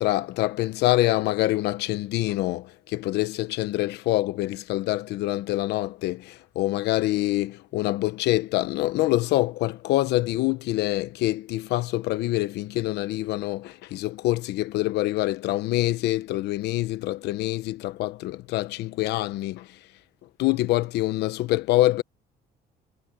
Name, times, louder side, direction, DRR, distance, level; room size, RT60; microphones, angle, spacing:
voice 1, 0.0-19.8 20.4-22.0, left 17 dB, 85° left, 1.0 m, -25 dB
cardioid pair, 110°, 17 cm